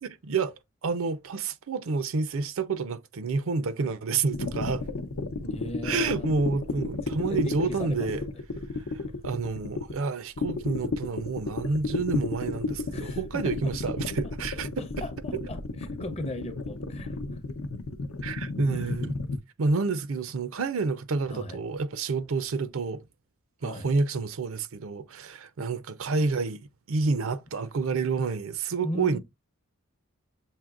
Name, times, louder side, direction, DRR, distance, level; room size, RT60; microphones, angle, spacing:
voice 1, 0.0-0.5 0.8-4.8 5.8-8.2 8.9-14.8 15.3-15.5 18.2-19.1 19.6-23.0 23.6-26.6 26.9-29.2, right 4 dB, 70° right, 0.5 m, -29 dB
sound 1, 4.3-9.9 10.4-19.4, left 3 dB, 75° left, 0.7 m, -33 dB
voice 2, 5.4-6.3 7.0-8.3 12.9-13.9 14.6-17.4 18.7-18.9 21.3-21.6 23.6-23.9 28.8-29.2, left 1 dB, 30° left, 0.7 m, -38 dB
7.2 x 2.8 x 2.3 m
head